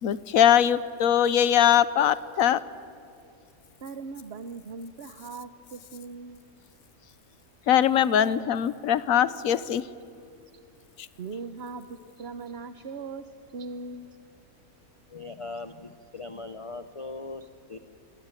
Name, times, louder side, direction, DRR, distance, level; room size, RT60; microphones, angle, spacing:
voice 1, 0.0-2.6 7.7-9.9 11.0-11.1, left 10 dB, 75° left, 16 dB, 1.3 m, -21 dB
voice 2, 3.8-6.4 11.2-14.1, right 4 dB, 50° right, 10 dB, 1.1 m, -39 dB
voice 3, 15.1-17.8, left 3 dB, 30° left, 10 dB, 0.7 m, -40 dB
27.5 x 22.5 x 9.1 m, 2.5 s
omnidirectional pair, 1.5 m